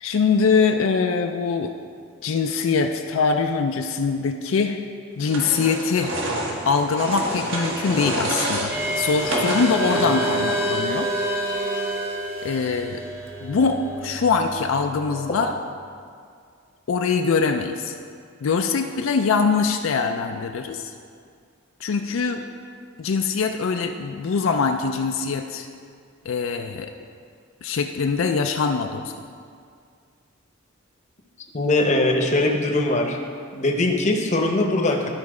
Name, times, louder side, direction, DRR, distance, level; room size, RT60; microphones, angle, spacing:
voice 1, 0.0-1.7 2.2-4.8 5.2-6.1 6.7-11.1 12.4-13.0 13.4-15.5 16.9-17.9 18.4-20.9 21.8-22.4 23.0-25.7 26.3-26.9 27.6-29.1, left 5 dB, 80° left, 5 dB, 0.4 m, -23 dB
sound 1, 5.3-10.7, right 1 dB, 70° right, 1.3 m, -28 dB
sound 2, 8.7-15.6, right 1 dB, 15° right, 0.7 m, -28 dB
voice 2, 31.5-33.2 33.5-35.1, left 2 dB, 35° left, 2 dB, 0.7 m, -21 dB
11.5 x 4.1 x 4.8 m, 2.2 s
head